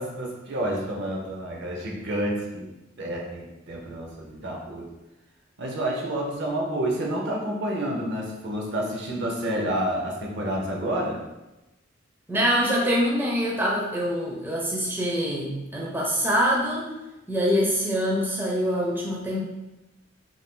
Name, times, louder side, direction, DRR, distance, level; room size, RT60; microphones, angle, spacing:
voice 1, 0.0-2.7 3.0-4.9 5.6-11.2, right 1 dB, 60° right, -1 dB, 0.6 m, -29 dB
voice 2, 12.3-16.9 17.3-19.4, equal, 10° right, -4 dB, 0.5 m, -24 dB
2.6 x 2.4 x 3.6 m, 0.99 s
head